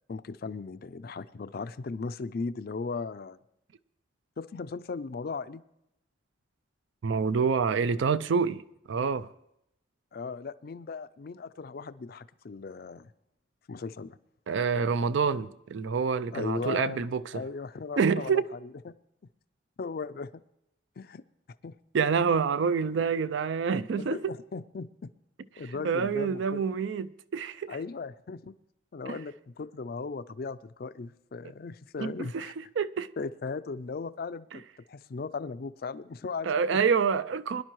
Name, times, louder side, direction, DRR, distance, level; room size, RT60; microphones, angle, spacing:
voice 1, 0.1-3.4 4.4-5.6 10.1-13.1 13.7-14.2 16.3-17.1 17.3-18.9 19.8-20.4 21.0-21.2 21.6-21.7 23.9-25.1 25.6-26.6 27.7-28.5 28.9-32.5 33.2-34.6 34.9-36.8, left 4 dB, 50° left, 0.4 m, -37 dB
voice 2, 7.0-8.6 8.9-9.3 14.5-17.4 18.0-18.4 21.9-24.2 25.8-27.8 29.1-29.2 32.0-32.5 32.8-33.1 34.5-34.6 36.4-37.6, right 5 dB, 65° right, 0.4 m, -27 dB
22.0 x 11.0 x 3.1 m
head